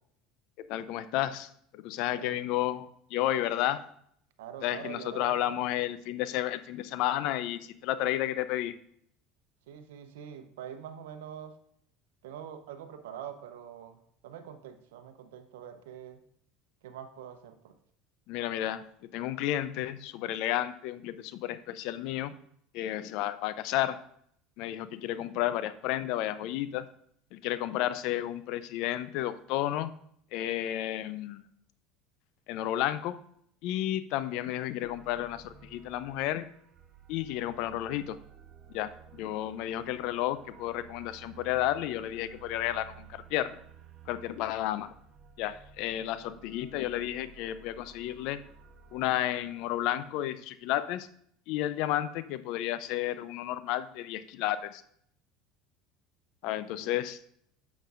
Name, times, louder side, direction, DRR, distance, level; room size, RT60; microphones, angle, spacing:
voice 1, 0.7-3.8 4.6-8.7 18.3-18.8 19.1-22.3 22.7-24.0 24.6-26.9 27.3-29.9 30.3-31.4 32.5-33.2 33.6-36.5 37.1-38.2 38.7-43.6 44.1-44.9 45.4-48.4 48.9-51.1 51.5-54.8 56.4-57.2, left 13 dB, 65° left, 13 dB, 0.5 m, -32 dB
voice 2, 4.4-5.6 9.7-11.5 12.2-16.2 16.8-17.8 56.4-57.0, right 9 dB, 80° right, 9 dB, 0.8 m, -45 dB
sound 1, 34.8-49.9, right 7 dB, 45° right, 2.0 m, -54 dB
9.1 x 7.3 x 2.5 m, 0.68 s
hypercardioid pair, 80°, 0 cm